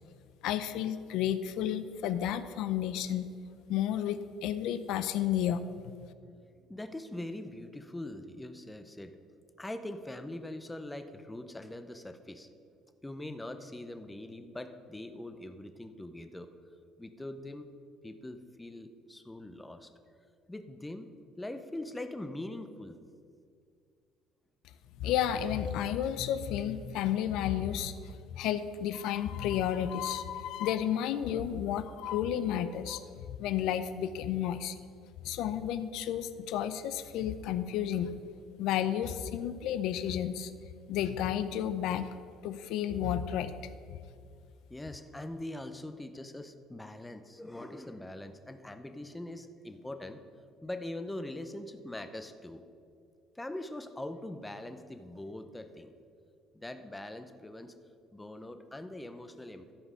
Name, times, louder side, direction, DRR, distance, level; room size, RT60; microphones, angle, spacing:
voice 1, 0.4-3.3 3.7-5.6 6.0-6.1 25.0-33.0 33.3-34.7 35.2-38.1 38.6-40.5 40.9-42.1 42.4-43.5 43.9-44.0, left 10 dB, 75° left, 12 dB, 0.5 m, -32 dB
voice 2, 6.7-9.2 9.6-12.5 13.0-16.5 17.0-17.7 18.0-19.9 20.5-21.1 21.4-23.0 44.7-50.2 50.6-52.6 53.4-55.9 56.5-57.7 58.1-59.7, left 1 dB, 10° left, 8 dB, 0.6 m, -42 dB
13.5 x 5.2 x 6.2 m, 2.3 s
cardioid pair, 130°, 0 cm